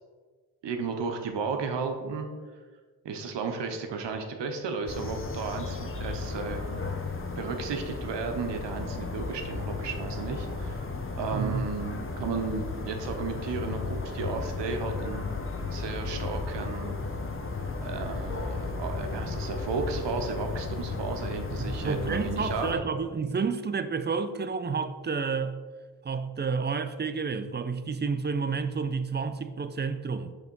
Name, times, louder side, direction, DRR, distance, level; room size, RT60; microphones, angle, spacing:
voice 1, 0.6-2.3 3.0-6.7 7.4-10.9 11.2-15.3 15.7-16.9 17.8-22.8, right 4 dB, 85° right, 0.9 m, -34 dB
sound 1, 4.9-22.7, left 3 dB, 30° left, 0.9 m, -34 dB
voice 2, 11.3-11.6 21.6-25.6 26.0-30.3, right 5 dB, 25° right, 0.5 m, -30 dB
6.0 x 3.5 x 5.3 m
cardioid pair, 45°, 42 cm